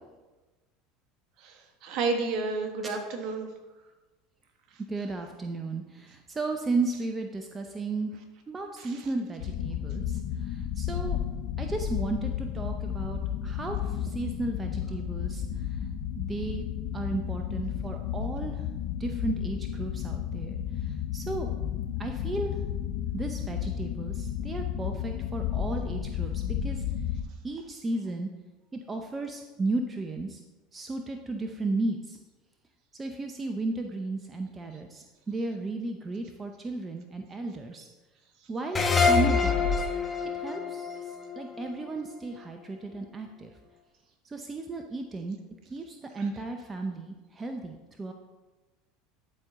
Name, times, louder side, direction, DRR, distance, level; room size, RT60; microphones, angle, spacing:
voice 1, 1.4-3.5 8.8-9.1, right 3 dB, 55° right, 4 dB, 1.4 m, -31 dB
voice 2, 4.9-8.1 8.5-10.2 10.5-11.2 11.6-15.4 16.2-16.7 16.9-18.6 19.0-20.6 21.1-21.5 22.0-22.6 23.1-26.8 27.4-28.3 28.7-30.4 30.7-32.2 32.9-37.9 38.5-39.9 40.3-43.5 44.2-45.4 45.7-48.1, right 3 dB, 25° right, 4 dB, 0.7 m, -34 dB
sound 1, 9.4-27.2, left 9 dB, 65° left, 0.6 m, -32 dB
sound 2, 38.7-42.1, left 5 dB, 25° left, 1.1 m, -26 dB
12.0 x 4.5 x 3.7 m, 1.2 s
hypercardioid pair, 85°, 0 cm